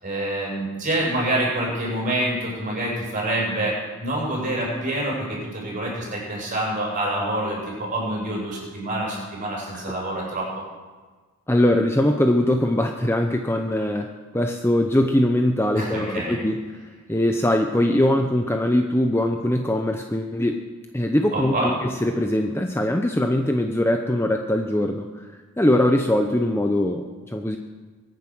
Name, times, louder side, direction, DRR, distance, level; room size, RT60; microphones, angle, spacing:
voice 1, 0.0-10.6 15.7-16.4 21.3-21.7, right 1 dB, 35° right, -4 dB, 6.7 m, -26 dB
voice 2, 11.5-16.6 17.1-20.6 20.9-25.2 25.6-27.6, left 1 dB, 10° left, 4 dB, 0.7 m, -22 dB
23.0 x 9.3 x 6.2 m, 1.4 s
head